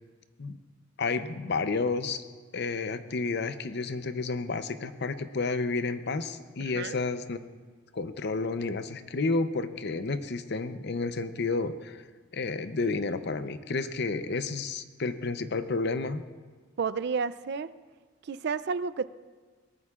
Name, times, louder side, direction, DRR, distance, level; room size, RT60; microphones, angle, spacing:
voice 1, 1.0-2.2 2.5-7.4 7.9-12.0 12.3-16.2, left 3 dB, 60° left, 10 dB, 0.7 m, -31 dB
voice 2, 6.6-7.0 16.8-17.7 18.2-19.1, right 5 dB, 60° right, 15 dB, 0.4 m, -31 dB
21.5 x 18.5 x 2.4 m, 1.4 s
head